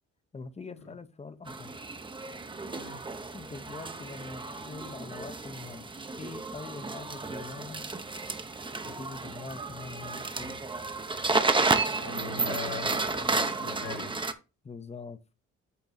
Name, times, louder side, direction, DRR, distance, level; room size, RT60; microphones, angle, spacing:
voice 1, 0.3-1.7 3.3-7.9 8.8-10.6 14.6-15.2, left 4 dB, 20° left, 0.7 m, -43 dB
sound 1, 1.5-14.3, right 3 dB, 15° right, 0.7 m, -32 dB
voice 2, 11.9-14.2, left 4 dB, 80° left, 2.4 m, -40 dB
8.4 x 3.8 x 4.1 m
cardioid pair, 90°, 30 cm